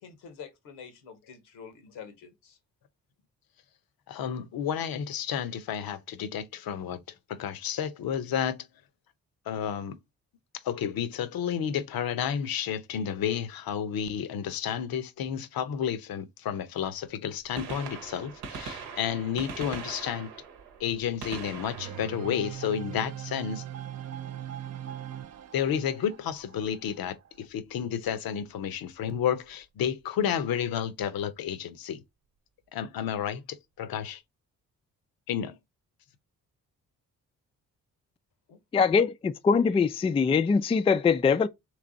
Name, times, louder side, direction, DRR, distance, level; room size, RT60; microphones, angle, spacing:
voice 1, 0.0-2.6 38.5-38.8, left 7 dB, 80° left, 1.0 m, -47 dB
voice 2, 4.1-7.0 7.3-8.6 9.5-10.0 10.7-20.3 20.8-23.6 25.5-32.0 32.7-33.4 33.8-34.2 35.3-35.5, left 8 dB, 65° left, 0.7 m, -31 dB
Gunshot gunfire, 17.4-23.3 25.2-25.4 26.4-26.5 28.1-28.2 29.5-29.6 29.8-29.9, right 5 dB, 75° right, 0.9 m, -42 dB
sound 1, 21.8-27.4, right 11 dB, 40° right, 0.5 m, -40 dB
voice 3, 38.7-41.5, left 5 dB, 15° left, 0.3 m, -23 dB
3.3 x 3.2 x 3.8 m
hypercardioid pair, 45°, 39 cm